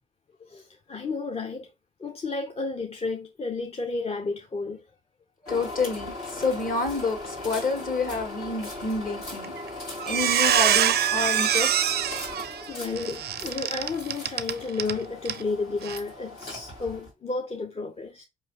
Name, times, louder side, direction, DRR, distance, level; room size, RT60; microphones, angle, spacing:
voice 1, 0.5-1.7 2.0-4.8 12.7-18.2, left 3 dB, 30° left, 0.6 m, -32 dB
sound 1, 5.4-17.1, left 2 dB, 90° left, 2.0 m, -39 dB
voice 2, 5.4-11.9, left 3 dB, 45° left, 1.5 m, -29 dB
Squeak, 9.4-9.7 10.0-15.0 15.3-15.4 15.8-16.0, right 10 dB, 55° right, 0.4 m, -24 dB
4.6 x 3.0 x 2.9 m
supercardioid pair, 50°, 19 cm